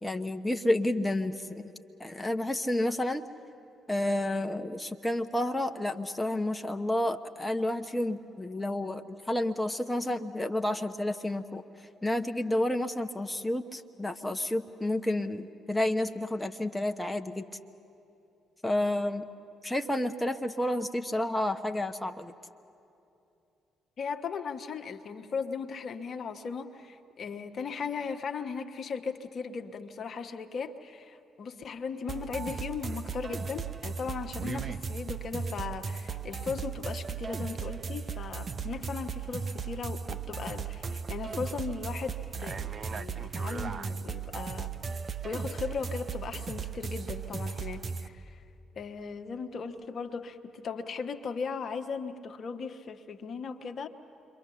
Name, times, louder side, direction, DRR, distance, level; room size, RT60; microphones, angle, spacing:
voice 1, 0.0-1.7 2.0-3.3 3.9-11.6 12.0-17.5 18.6-19.3 19.6-22.3, left 1 dB, 10° left, 6 dB, 1.0 m, -30 dB
voice 2, 24.0-44.7 45.2-48.4 48.8-53.9, left 5 dB, 50° left, 6 dB, 1.1 m, -37 dB
sound 1, 32.1-48.1, right 6 dB, 40° right, 0.8 m, -36 dB
28.0 x 23.0 x 7.1 m, 2.8 s
figure-of-eight pair, 45°, 0 cm